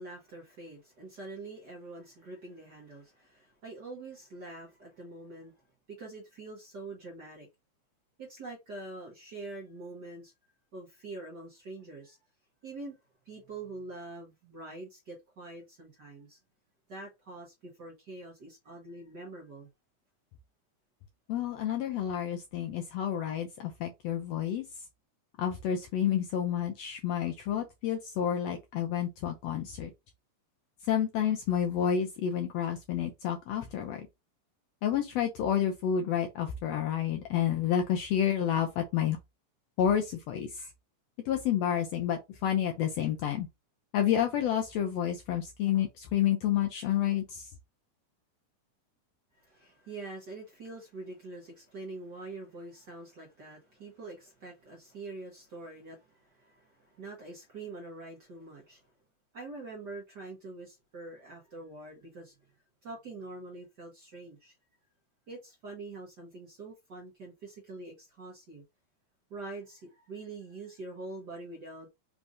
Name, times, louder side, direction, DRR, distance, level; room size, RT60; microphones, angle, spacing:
voice 1, 0.0-5.6 5.9-7.5 8.2-10.3 10.7-12.2 12.6-13.0 13.2-16.4 16.9-19.7 49.3-58.8 59.3-62.4 62.8-64.5 65.3-68.6 69.3-71.9, right 2 dB, 50° right, 1.4 m, -45 dB
voice 2, 21.3-24.6 25.4-29.9 30.9-34.1 34.8-39.2 39.8-40.7 41.3-43.5 43.9-47.5, left 9 dB, 80° left, 1.6 m, -29 dB
5.1 x 3.4 x 2.6 m
omnidirectional pair, 3.5 m